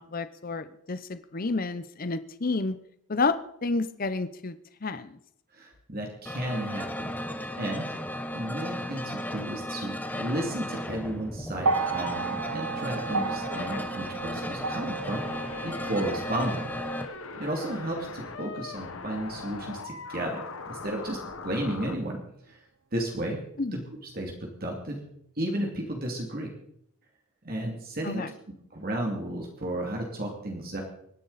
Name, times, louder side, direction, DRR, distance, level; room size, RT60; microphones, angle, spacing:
voice 1, 0.0-2.8 3.1-4.6 4.8-5.2 13.5-13.8 23.6-23.8 28.0-28.3, left 3 dB, 40° left, 12 dB, 0.7 m, -30 dB
voice 2, 5.5-7.1 7.6-7.9 8.3-15.3 15.6-17.1 17.4-22.2 22.5-22.6 22.9-23.4 23.7-25.0 25.4-26.5 27.4-28.2 28.7-30.8, right 1 dB, 45° right, 0 dB, 2.7 m, -33 dB
sound 1, 6.3-17.1, left 1 dB, 10° left, 0.9 m, -35 dB
sound 2, 11.6-19.9 21.0-21.1, right 4 dB, 90° right, 0.7 m, -35 dB
sound 3, 15.0-22.0, left 4 dB, 75° left, 1.3 m, -40 dB
25.5 x 10.5 x 4.1 m, 0.72 s
head